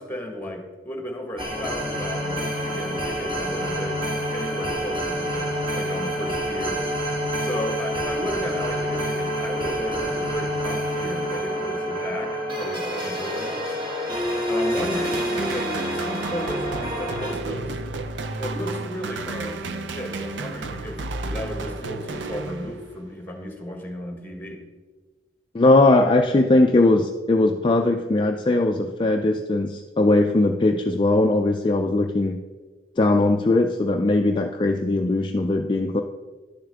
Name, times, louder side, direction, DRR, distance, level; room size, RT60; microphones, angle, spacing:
voice 1, 0.0-6.8 7.4-13.8 14.5-17.8 18.4-24.7, left 1 dB, 10° left, 3 dB, 1.3 m, -34 dB
sound 1, 1.4-17.3, equal, 30° right, 1.7 m, -27 dB
sound 2, 14.8-23.1, right 3 dB, 90° right, 0.6 m, -32 dB
voice 2, 25.5-32.4 33.0-36.0, left 2 dB, 30° left, 3 dB, 0.4 m, -20 dB
11.0 x 7.0 x 3.4 m, 1.3 s
head